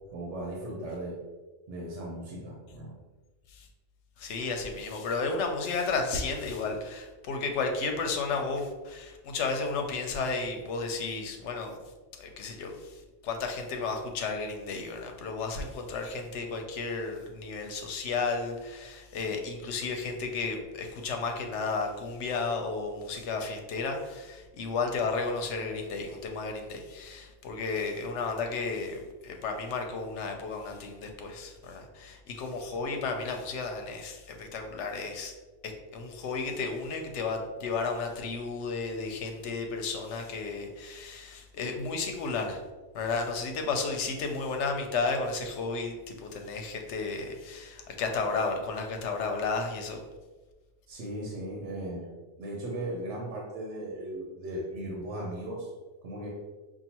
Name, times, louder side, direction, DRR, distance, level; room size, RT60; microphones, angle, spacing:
voice 1, 0.1-1.2 1.7-2.9 50.9-55.7 56.0-56.3, right 1 dB, 85° right, -2 dB, 1.1 m, -37 dB
voice 2, 4.2-11.7 12.2-12.9 13.2-35.3 35.6-42.6 42.9-50.0, left 4 dB, 85° left, 4 dB, 0.9 m, -33 dB
5.6 x 2.4 x 2.8 m, 1.2 s
omnidirectional pair, 1.2 m